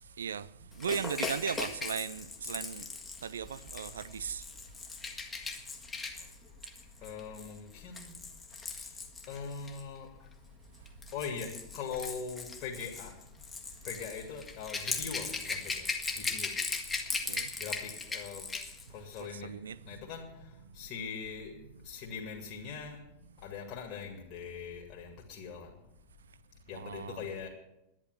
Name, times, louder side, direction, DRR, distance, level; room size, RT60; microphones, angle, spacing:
voice 1, 0.0-2.9 3.2-4.5 10.8-10.9 16.9-17.6 19.2-20.0 20.7-20.8 23.4-23.5 26.7-27.3, right 7 dB, 65° right, 0.5 m, -38 dB
Rattle / Rattle (instrument), 0.8-9.8 10.7-18.9 19.1-19.3, left 4 dB, 15° left, 1.6 m, -39 dB
voice 2, 7.0-8.2 9.3-10.1 11.1-13.1 13.8-15.8 16.1-16.5 17.6-18.4 18.9-19.5 19.9-20.3 20.8-21.5 21.8-23.0 23.4-25.7 26.7-27.5, left 6 dB, 40° left, 2.4 m, -41 dB
11.5 x 10.0 x 8.2 m
figure-of-eight pair, 90°, 0 cm